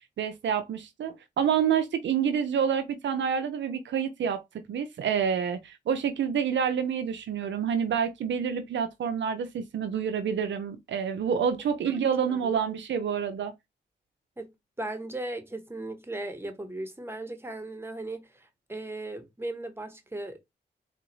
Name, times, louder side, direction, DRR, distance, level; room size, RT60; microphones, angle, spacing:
voice 1, 0.2-4.4 4.7-13.5, right 7 dB, 80° right, 0.5 m, -28 dB
voice 2, 11.9-12.5 14.4-14.5 14.8-20.4, right 2 dB, 10° right, 1.1 m, -37 dB
3.9 x 2.5 x 3.0 m
cardioid pair, 50°, 19 cm